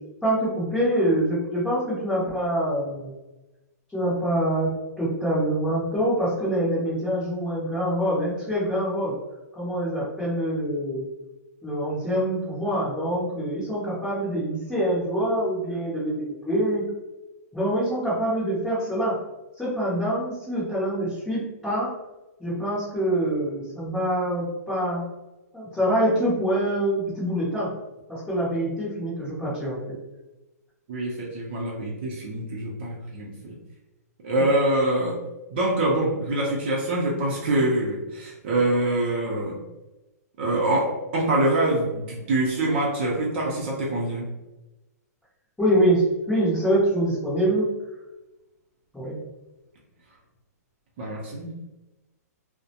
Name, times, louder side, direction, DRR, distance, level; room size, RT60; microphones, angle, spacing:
voice 1, 0.2-3.1 3.9-9.1 9.5-11.0 11.6-16.8 17.5-19.1 19.6-21.9 22.4-25.0 25.5-27.7 28.1-29.9 34.4-34.5 45.6-47.7 48.9-49.2, right 1 dB, 5° left, -13 dB, 0.7 m, -25 dB
voice 2, 30.9-33.6 34.2-35.2 35.5-39.6 40.4-44.3 51.0-51.5, right 1 dB, 40° right, -3 dB, 0.6 m, -25 dB
2.3 x 2.0 x 2.8 m, 1.0 s
hypercardioid pair, 160°, 9 cm